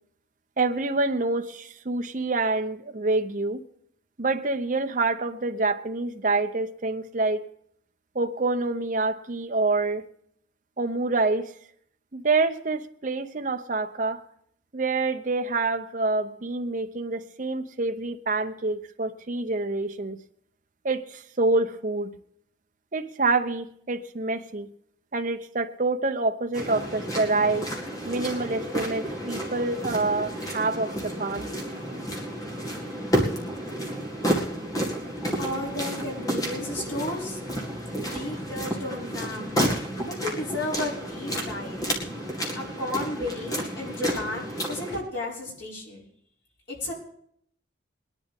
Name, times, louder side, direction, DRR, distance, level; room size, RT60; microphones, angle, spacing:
voice 1, 0.6-3.6 4.2-7.4 8.1-10.1 10.8-11.5 12.1-14.2 14.7-20.2 20.8-22.1 22.9-24.7 25.1-27.7 28.0-31.5, right 3 dB, 40° right, 0.8 m, -27 dB
sound 1, 26.5-45.0, equal, 20° left, 2.1 m, -31 dB
voice 2, 35.4-37.4 38.0-39.6 40.0-41.8 42.5-46.0 46.7-46.9, left 2 dB, 75° left, 5.8 m, -33 dB
21.5 x 10.5 x 3.6 m
head